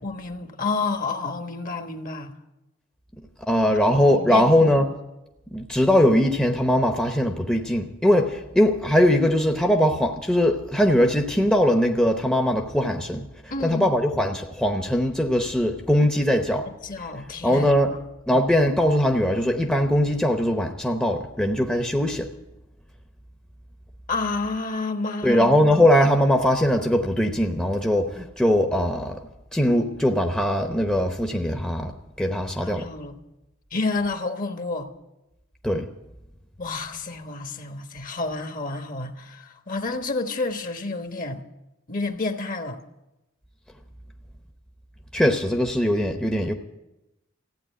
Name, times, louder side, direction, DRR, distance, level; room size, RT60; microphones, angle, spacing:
voice 1, 0.0-2.4 3.6-3.7 4.2-4.5 13.5-13.9 16.6-18.0 24.1-25.4 32.6-33.2 33.7-34.9 36.6-41.4 41.9-42.8, left 3 dB, 45° left, 1.2 m, -30 dB
voice 2, 3.5-4.9 5.5-13.2 13.6-16.6 17.4-17.9 18.3-22.2 25.2-29.2 29.5-31.9 32.2-32.8 35.6-35.8 45.1-46.5, equal, 5° left, 0.8 m, -21 dB
15.0 x 8.9 x 9.0 m
head